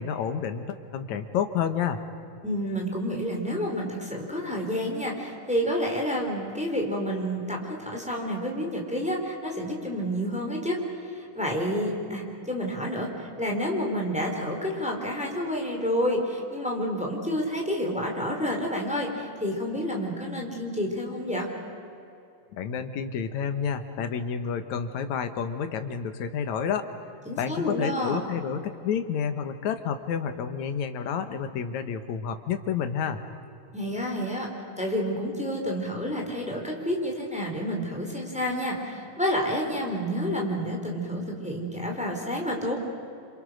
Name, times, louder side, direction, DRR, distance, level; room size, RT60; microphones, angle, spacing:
voice 1, 0.0-2.0 22.5-26.9 27.4-33.2, left 7 dB, 65° left, 8 dB, 2.5 m, -30 dB
voice 2, 2.4-21.5 27.3-28.2 33.7-34.5 34.8-42.7, equal, ahead, -1 dB, 3.9 m, -29 dB
29.0 x 26.5 x 6.4 m, 2.7 s
omnidirectional pair, 3.8 m